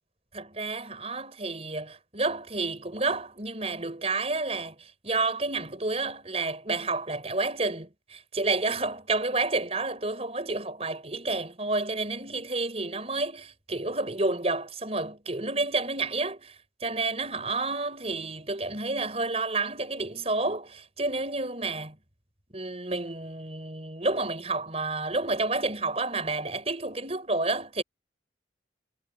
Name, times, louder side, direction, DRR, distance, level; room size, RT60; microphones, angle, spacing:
voice 1, 0.3-4.8 5.0-16.6 16.8-22.0 22.5-27.8, right 3 dB, 35° right, 5.4 m, -30 dB
head